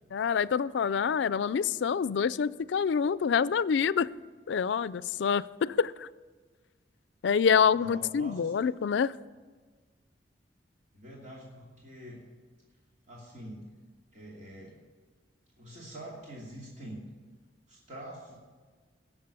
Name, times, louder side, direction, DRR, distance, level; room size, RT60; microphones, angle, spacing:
voice 1, 0.1-4.1 4.5-6.1 7.2-9.1, left 6 dB, 85° left, 19 dB, 0.4 m, -26 dB
voice 2, 7.6-8.5 10.9-12.2 13.1-13.7 14.1-14.8 15.6-17.0 17.7-18.4, right 1 dB, 40° right, -4 dB, 2.7 m, -45 dB
17.5 x 7.0 x 6.8 m, 1.5 s
head